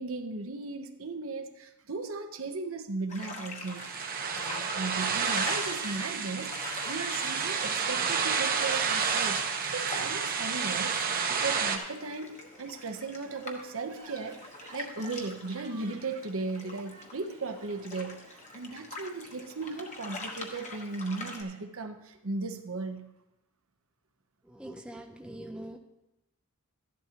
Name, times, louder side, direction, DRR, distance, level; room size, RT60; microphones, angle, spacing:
voice 1, 0.0-3.9 4.3-9.5 9.7-23.1, right 3 dB, 70° right, 6 dB, 0.9 m, -37 dB
sound 1, 3.1-21.4, left 3 dB, 35° left, 1.1 m, -44 dB
sound 2, 3.6-11.8, right 6 dB, 40° right, 0.9 m, -30 dB
Crying sobbing, 4.9-19.1 19.4-19.5 20.5-21.6, right 3 dB, 85° right, 2.0 m, -51 dB
voice 2, 24.4-25.8, right 1 dB, 5° right, 3 dB, 0.6 m, -43 dB
13.5 x 11.0 x 2.9 m, 0.91 s
head